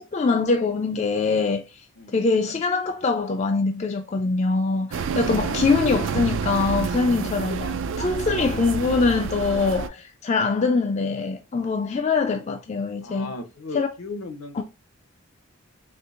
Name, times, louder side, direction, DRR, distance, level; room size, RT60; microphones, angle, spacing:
voice 1, 0.0-1.6 2.1-13.3 13.7-13.9 14.6-14.7, left 4 dB, 30° left, 0.3 m, -23 dB
voice 2, 2.0-2.3 13.0-14.6, left 3 dB, 70° left, 0.8 m, -36 dB
sound 1, 4.9-9.9, right 5 dB, 60° right, 0.3 m, -28 dB
4.4 x 3.2 x 2.4 m
head